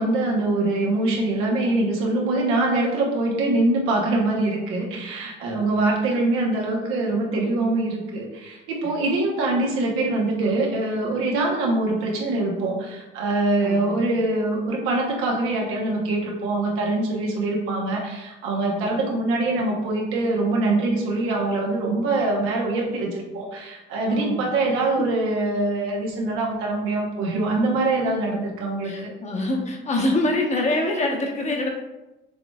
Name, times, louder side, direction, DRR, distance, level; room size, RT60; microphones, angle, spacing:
voice 1, 0.0-29.1, right 2 dB, 85° right, -1 dB, 1.1 m, -24 dB
voice 2, 5.4-6.0 8.8-9.0 13.6-14.1 18.7-19.1 24.1-24.5 25.0-25.1 28.0-28.1 28.8-31.7, left 2 dB, 30° left, 0 dB, 1.1 m, -26 dB
6.9 x 3.2 x 2.3 m, 1.0 s
supercardioid pair, 80°, 21 cm